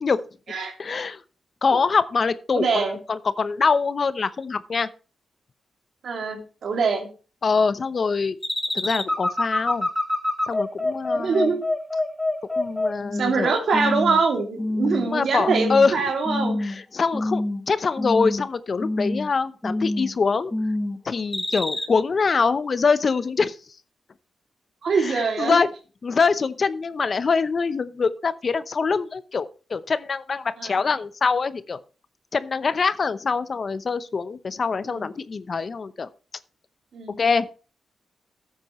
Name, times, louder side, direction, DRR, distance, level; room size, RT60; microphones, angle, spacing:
voice 1, 0.8-1.2 1.6-4.9 7.4-8.4 8.7-9.9 10.5-11.5 12.5-13.5 15.1-15.9 16.6-20.5 21.0-23.6 25.0-25.7 26.0-31.8 32.3-36.1 37.1-37.5, left 5 dB, 50° left, 13 dB, 0.7 m, -24 dB
voice 2, 2.5-3.0 6.0-7.1 11.1-11.6 13.1-16.6 24.8-25.6 30.6-30.8 34.9-35.1 36.9-37.1, right 4 dB, 70° right, 3 dB, 2.6 m, -24 dB
sound 1, 8.4-13.4 13.7-14.2 14.6-15.1 15.5-15.9 16.3-16.8 17.1-17.7 18.0-18.5 18.8-19.3 19.6-20.1 20.5-21.0 21.3-21.8, left 2 dB, 15° left, 1.8 m, -26 dB
13.0 x 8.3 x 3.1 m, 0.35 s
cardioid pair, 60°, 0 cm